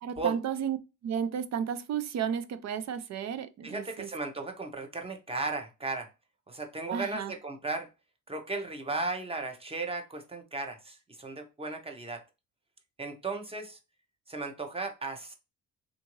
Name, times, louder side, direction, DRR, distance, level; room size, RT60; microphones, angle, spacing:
voice 1, 0.0-4.1 6.9-7.3, right 8 dB, 55° right, 0.5 m, -33 dB
voice 2, 3.6-6.1 6.5-7.9 8.3-12.2 13.0-13.8 14.3-15.3, right 3 dB, 20° right, 0.8 m, -35 dB
3.5 x 2.6 x 3.0 m
cardioid pair, 115°, 32 cm